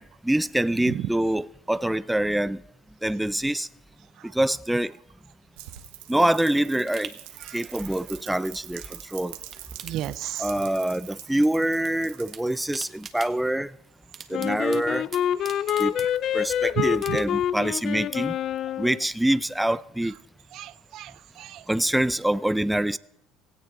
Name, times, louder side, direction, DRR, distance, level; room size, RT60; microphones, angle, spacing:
voice 1, 0.0-2.6 3.0-3.7 4.3-4.9 6.1-7.1 7.5-9.4 10.4-13.7 14.3-15.1 15.8-16.0 16.3-18.3 18.8-20.1 21.7-23.0, right 1 dB, 5° right, 0.5 m, -25 dB
Rain, 5.6-13.6, right 14 dB, 85° right, 1.3 m, -44 dB
sound 1, 6.5-9.0 9.3-10.8 11.1-11.9 12.2-16.5 16.9-17.6 18.0-18.1, right 7 dB, 40° right, 1.5 m, -45 dB
voice 2, 9.8-10.6 14.5-14.6 15.5-15.7 16.0-16.1 16.8-17.2 20.5-21.7, right 13 dB, 65° right, 0.6 m, -34 dB
Wind instrument woodwind instrument, 14.3-19.1, left 10 dB, 55° left, 0.6 m, -27 dB
17.0 x 16.5 x 3.8 m
supercardioid pair, 85°, 0 cm